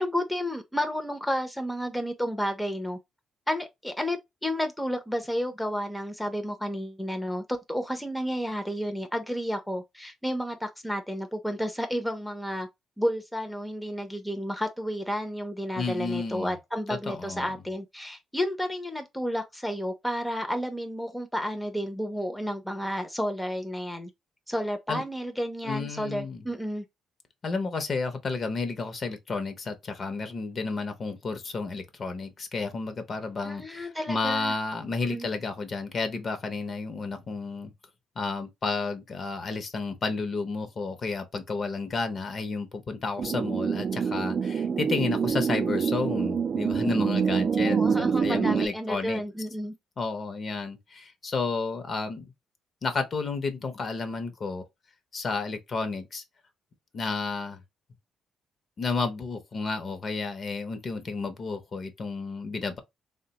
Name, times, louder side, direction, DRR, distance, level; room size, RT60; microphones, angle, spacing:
voice 1, 0.0-3.0 3.5-12.7 13.0-24.1 24.5-26.8 33.4-34.5 35.0-35.3 47.5-49.7, equal, 5° left, 0.5 m, -31 dB
voice 2, 15.7-16.5 16.9-17.5 24.9-25.0 25.6-26.4 27.4-37.7 38.2-49.2 50.0-52.2 52.8-54.6 55.1-56.2 56.9-57.6 58.8-62.8, left 4 dB, 45° left, 0.7 m, -31 dB
sound 1, 43.2-48.7, right 6 dB, 50° right, 0.3 m, -26 dB
3.3 x 2.1 x 2.8 m
cardioid pair, 90°, 0 cm